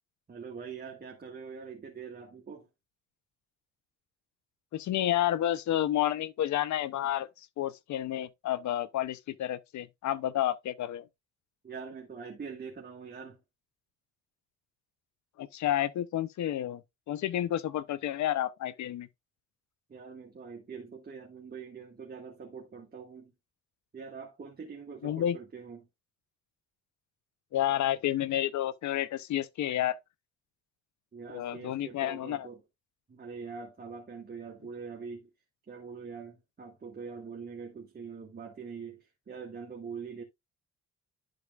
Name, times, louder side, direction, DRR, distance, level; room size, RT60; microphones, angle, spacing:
voice 1, 0.3-2.7 11.6-13.4 19.9-23.3 23.9-25.8 31.1-32.6 33.1-35.3 35.7-40.2, right 5 dB, 30° right, 1.7 m, -43 dB
voice 2, 4.7-11.1 15.4-16.8 17.1-19.1 25.0-25.4 27.5-30.0 31.3-32.5, left 12 dB, 70° left, 0.7 m, -30 dB
12.0 x 5.0 x 2.3 m
cardioid pair, 90°, 30 cm